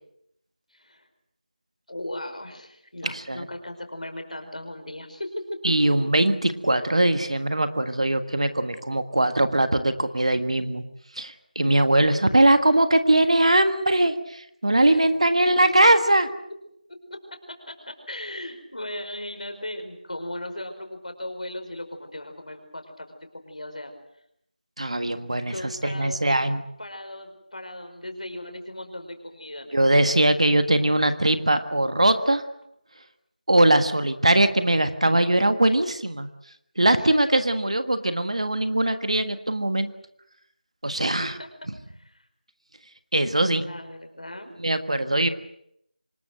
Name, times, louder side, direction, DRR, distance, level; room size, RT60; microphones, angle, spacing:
voice 1, 0.7-1.1 1.9-5.9 14.8-15.1 15.6-15.7 16.9-23.9 25.5-26.4 26.8-30.1 36.9-37.8 40.9-41.5 41.9-42.3 43.5-44.5, left 1 dB, 55° left, 6 dB, 5.2 m, -37 dB
voice 2, 3.0-3.4 5.6-10.8 11.1-16.3 24.8-25.5 25.8-26.6 29.7-32.4 33.5-36.3 36.8-39.9 40.8-41.4 43.1-43.7 44.6-45.3, right 1 dB, 45° right, 9 dB, 1.6 m, -21 dB
26.0 x 20.5 x 8.0 m, 0.76 s
figure-of-eight pair, 180°, 5 cm